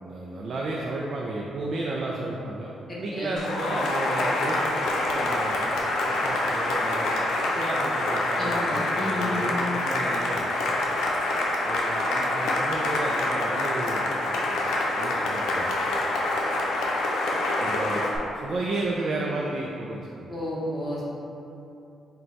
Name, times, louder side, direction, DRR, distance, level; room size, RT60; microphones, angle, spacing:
voice 1, 0.0-5.5 6.2-10.4 11.6-14.6 15.0-15.7 17.6-18.1 18.4-20.4, right 2 dB, 55° right, -3 dB, 0.4 m, -33 dB
voice 2, 2.9-3.3 8.4-9.5 20.3-21.0, left 1 dB, 25° left, -7 dB, 1.1 m, -32 dB
Cheering / Applause, 3.4-18.2, left 2 dB, 85° left, 0.5 m, -26 dB
3.9 x 2.2 x 4.4 m, 2.8 s
cardioid pair, 90°, 0 cm